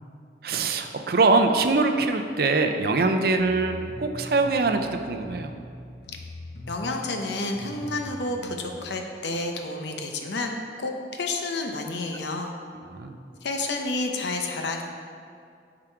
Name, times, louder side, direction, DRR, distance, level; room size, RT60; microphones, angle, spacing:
voice 1, 0.4-5.5 12.9-13.2, right 3 dB, 55° right, 6 dB, 0.5 m, -23 dB
sound 1, 3.4-8.7, left 1 dB, 60° left, 1.3 m, -41 dB
voice 2, 6.7-12.5 13.4-14.8, left 2 dB, 75° left, 3 dB, 0.8 m, -30 dB
7.2 x 4.9 x 4.5 m, 2.3 s
head